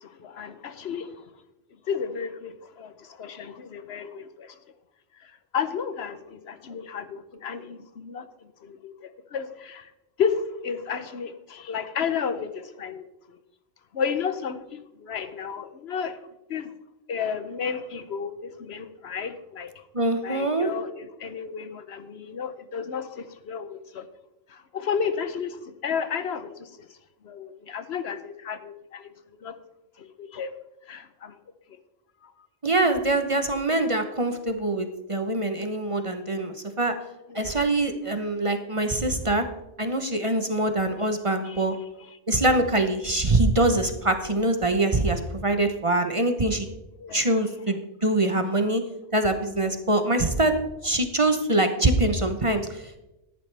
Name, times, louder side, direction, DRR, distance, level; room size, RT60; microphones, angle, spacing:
voice 1, 0.0-1.1 1.9-4.5 5.5-8.3 8.6-9.9 10.2-13.1 13.9-14.6 15.0-16.2 16.5-16.7 17.1-19.7 20.2-24.0 24.5-26.7 27.2-29.1 29.4-29.6 30.0-30.5 30.9-31.3 32.2-32.3 37.3-37.5 41.4-41.6 47.0-47.2, left 6 dB, 65° left, 11 dB, 1.0 m, -32 dB
voice 2, 19.9-20.7 32.6-36.9 37.3-39.4 39.8-41.7 42.3-46.7 47.1-48.8 49.1-50.5 50.8-53.0, right 2 dB, 30° right, 7 dB, 0.8 m, -24 dB
13.5 x 11.0 x 3.3 m, 0.95 s
omnidirectional pair, 1.2 m